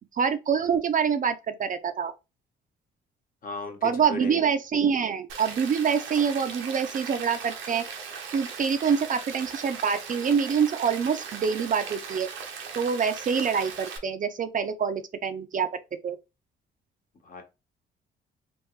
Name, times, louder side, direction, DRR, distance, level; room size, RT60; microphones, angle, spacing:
voice 1, 0.1-2.1 3.8-7.8 8.3-12.3 12.7-15.7 16.0-16.2, right 6 dB, 40° right, 0.5 m, -26 dB
voice 2, 3.4-4.4 17.2-17.4, left 3 dB, 45° left, 1.0 m, -37 dB
Rain, 5.3-14.0, right 6 dB, 85° right, 0.8 m, -38 dB
3.5 x 2.5 x 3.1 m
cardioid pair, 90°, 20 cm